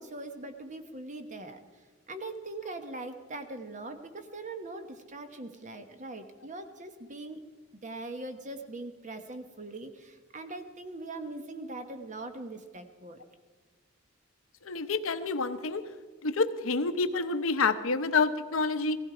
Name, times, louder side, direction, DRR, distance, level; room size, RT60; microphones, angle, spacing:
voice 1, 0.0-1.6 2.1-7.4 7.8-13.2, right 2 dB, 35° right, 7 dB, 1.2 m, -41 dB
voice 2, 14.6-15.8 16.2-19.0, left 4 dB, 75° left, 10 dB, 0.9 m, -28 dB
18.0 x 15.5 x 4.9 m, 1.5 s
head